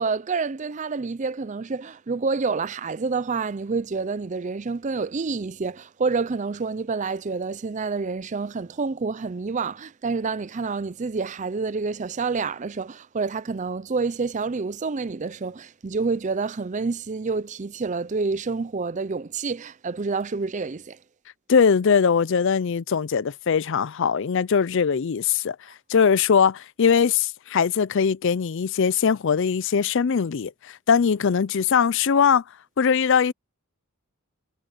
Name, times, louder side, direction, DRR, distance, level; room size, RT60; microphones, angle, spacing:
voice 1, 0.0-21.0, right 4 dB, 35° right, 0.5 m, -28 dB
voice 2, 21.5-25.6 25.9-32.4 32.8-33.3, left 6 dB, 60° left, 0.4 m, -21 dB
head